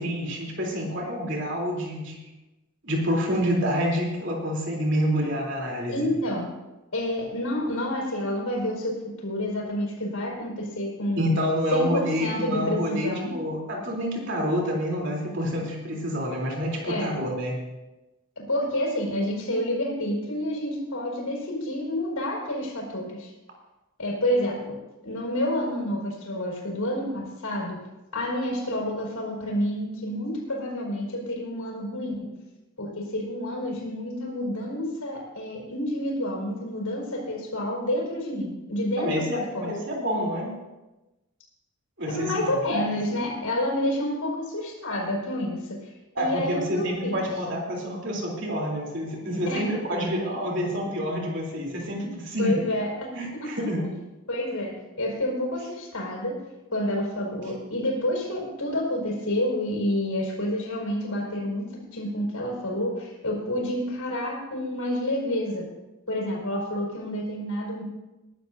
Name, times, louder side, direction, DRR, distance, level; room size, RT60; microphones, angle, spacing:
voice 1, 0.0-2.2 2.8-6.1 11.2-17.6 39.0-40.5 42.0-42.9 46.1-52.6 53.1-53.8, equal, 55° right, -1 dB, 3.4 m, -28 dB
voice 2, 5.9-6.5 6.9-11.3 11.7-13.4 16.8-17.2 18.4-23.3 24.0-24.8 25.0-27.8 28.1-32.3 32.8-39.7 42.1-45.8 46.2-47.3 49.5-49.7 52.4-53.5 54.3-56.4 56.7-65.7 66.1-67.8, left 1 dB, 85° left, -1 dB, 5.1 m, -29 dB
21.5 x 12.0 x 2.7 m, 1.0 s
head